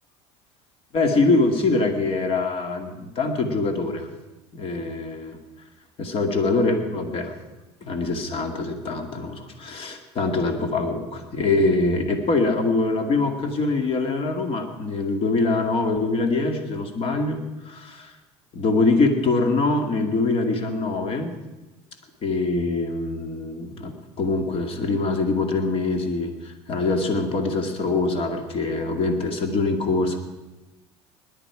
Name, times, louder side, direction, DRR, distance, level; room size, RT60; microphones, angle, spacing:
voice 1, 0.9-4.1 4.5-5.4 6.0-7.3 7.8-17.4 17.7-18.1 18.5-21.3 22.2-30.2, left 3 dB, 45° left, 5 dB, 2.2 m, -24 dB
20.0 x 11.5 x 4.8 m, 1.1 s
supercardioid pair, 105°, 14 cm